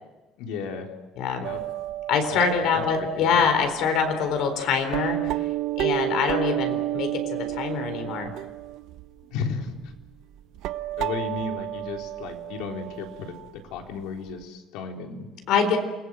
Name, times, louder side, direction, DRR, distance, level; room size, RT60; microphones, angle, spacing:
voice 1, 0.4-0.9 1.4-1.6 2.3-3.3 9.3-9.8 11.0-13.3 13.6-15.3, left 5 dB, 80° left, 3 dB, 3.9 m, -34 dB
voice 2, 1.2-1.5 2.1-5.4 5.8-8.3 15.5-15.8, left 6 dB, 60° left, 7 dB, 4.1 m, -24 dB
sound 1, 1.4-3.5 4.4-4.5 4.9-9.2 9.9-10.1 10.5-13.5 13.8-13.9 14.4-14.5, right 15 dB, 60° right, 0.8 m, -31 dB
28.5 x 21.5 x 7.7 m, 1.1 s
cardioid pair, 175°, 0 cm